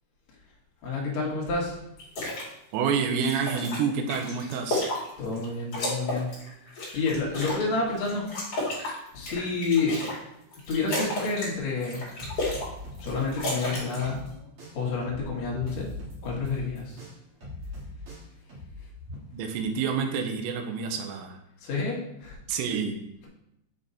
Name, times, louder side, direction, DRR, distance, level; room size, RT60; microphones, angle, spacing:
voice 1, 0.8-1.8 5.2-6.3 6.9-8.2 9.1-10.0 10.7-12.0 13.0-14.2 14.7-15.9 16.2-17.0 21.6-22.3, left 4 dB, 75° left, -4 dB, 1.6 m, -29 dB
sound 1, 2.0-2.5 2.9-5.4 5.7-7.7 8.0-10.2 10.5-11.5 11.8-12.7 12.9-14.1, left 1 dB, 40° left, 2.5 m, -32 dB
voice 2, 2.7-4.9 19.3-21.4 22.5-23.0, right 6 dB, 80° right, 4 dB, 2.8 m, -28 dB
sound 2, 12.2-14.3 14.6-19.1, left 2 dB, 50° right, 1.8 m, -41 dB
7.6 x 3.8 x 4.0 m, 0.79 s
omnidirectional pair, 5.7 m